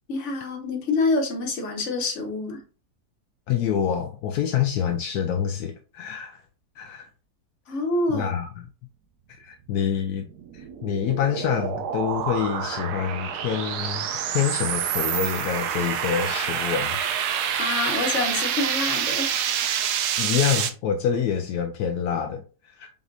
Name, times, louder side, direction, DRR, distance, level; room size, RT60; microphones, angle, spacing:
voice 1, 0.1-2.6 7.7-8.3 17.6-19.5, left 3 dB, 50° left, 1.4 m, -26 dB
voice 2, 3.5-6.4 6.8-7.1 8.1-8.7 9.3-10.3 10.5-14.1 14.3-17.0 20.2-22.9, left 8 dB, 80° left, 1.1 m, -26 dB
sound 1, 10.2-20.7, right 8 dB, 85° right, 1.2 m, -27 dB
5.2 x 3.8 x 2.6 m
omnidirectional pair, 1.7 m